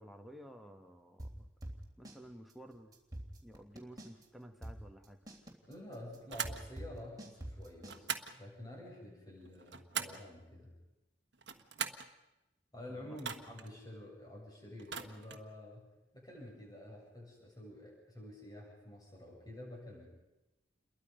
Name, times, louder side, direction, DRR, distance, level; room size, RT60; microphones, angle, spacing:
voice 1, 0.0-1.5 2.0-3.0 3.4-5.2 12.9-13.2, equal, ahead, 3 dB, 1.8 m, -53 dB
sound 1, 1.2-2.2 2.5-2.6 2.9-4.2 4.6-8.0, right 1 dB, 20° right, 3.2 m, -45 dB
voice 2, 5.7-10.7 12.7-20.1, left 1 dB, 20° left, -2 dB, 7.3 m, -49 dB
sound 2, 6.3-6.6 7.9-8.4 9.4-10.3 11.3-12.1 13.2-13.7 14.8-15.5, right 7 dB, 70° right, 1.4 m, -41 dB
29.0 x 22.0 x 5.3 m, 1.0 s
head